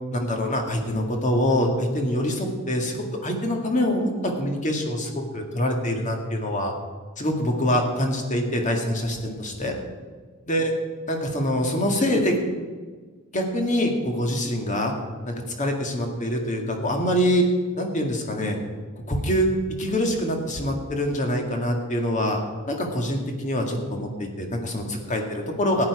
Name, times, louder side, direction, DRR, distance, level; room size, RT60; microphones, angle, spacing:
voice 1, 0.1-6.7 7.2-9.7 10.5-10.7 11.1-12.4 13.3-14.9 15.3-17.4 17.8-18.6 19.1-19.5 19.8-22.4 22.7-25.8, equal, 35° left, 3 dB, 1.9 m, -25 dB
14.0 x 10.0 x 4.9 m, 1.5 s
head